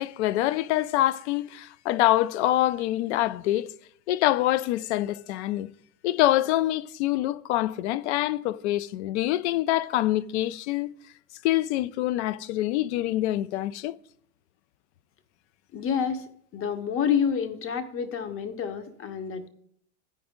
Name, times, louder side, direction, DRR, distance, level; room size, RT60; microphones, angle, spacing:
voice 1, 0.0-3.7 4.1-5.7 6.0-10.9 11.4-14.0, left 15 dB, 55° left, 0.5 m, -25 dB
voice 2, 15.7-19.5, left 7 dB, 30° left, 1.0 m, -28 dB
14.5 x 5.1 x 3.7 m
hypercardioid pair, 85°, 41 cm